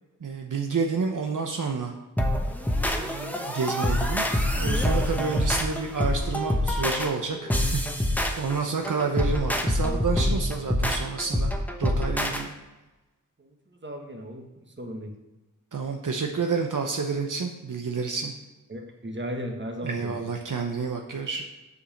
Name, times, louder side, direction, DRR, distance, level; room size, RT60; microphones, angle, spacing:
voice 1, 0.2-1.9 3.0-4.3 4.5-11.5 11.8-12.5 15.7-18.3 19.8-21.4, right 5 dB, 70° right, 2 dB, 0.9 m, -29 dB
sound 1, 2.2-12.4, left 1 dB, 5° left, 1.1 m, -26 dB
voice 2, 13.4-15.1 18.7-20.3, equal, 35° right, 2 dB, 1.4 m, -36 dB
8.3 x 5.2 x 6.5 m, 1.1 s
wide cardioid pair, 85°, 32 cm